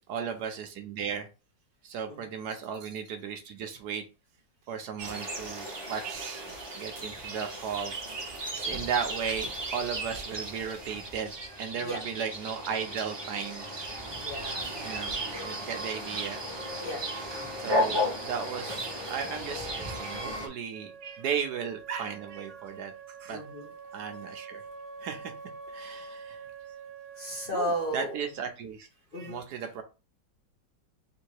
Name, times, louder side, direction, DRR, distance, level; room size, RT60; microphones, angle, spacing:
voice 1, 0.1-1.3 1.8-4.0 4.7-6.4 6.7-7.9 8.5-13.7 14.8-16.4 17.5-22.9 23.2-23.4 23.9-24.6 25.0-25.3 25.7-26.4 27.5-28.9 29.2-29.8, right 7 dB, 70° right, 6 dB, 1.1 m, -35 dB
sound 1, 5.0-20.5, equal, 25° right, 0.6 m, -35 dB
voice 2, 14.1-14.7 16.8-17.0 19.3-19.5 23.3-23.7 27.2-28.2 29.1-29.4, equal, 40° left, -2 dB, 1.0 m, -34 dB
Wind instrument woodwind instrument, 20.7-28.4, right 5 dB, 45° right, 1.5 m, -46 dB
3.8 x 2.6 x 4.6 m, 0.30 s
omnidirectional pair, 1.9 m